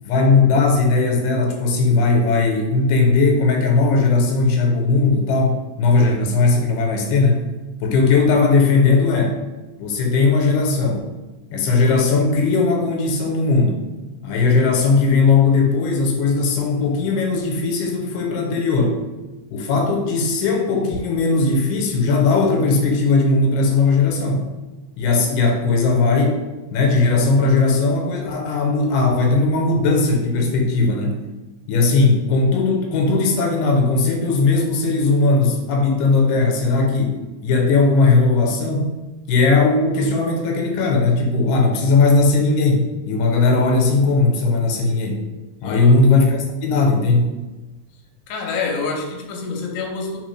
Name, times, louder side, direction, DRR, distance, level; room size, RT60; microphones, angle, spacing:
voice 1, 0.0-7.4 7.8-9.4 9.8-11.0 11.5-13.8 14.2-19.0 19.5-24.5 25.0-26.4 26.7-31.2 31.7-38.9 39.3-45.2 45.6-47.3, left 3 dB, 90° left, 1 dB, 2.3 m, -18 dB
voice 2, 45.6-46.0 48.3-50.2, left 4 dB, 70° left, 0 dB, 1.8 m, -27 dB
4.3 x 3.9 x 3.1 m, 1.1 s
omnidirectional pair, 3.8 m